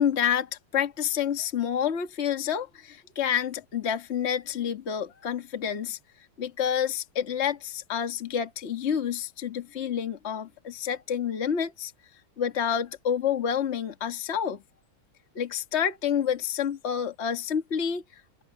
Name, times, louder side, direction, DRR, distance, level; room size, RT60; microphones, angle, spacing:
voice 1, 0.0-6.0 6.4-11.9 12.4-14.6 15.3-18.4, left 8 dB, 35° left, 1.7 m, -28 dB
open air
omnidirectional pair, 2.4 m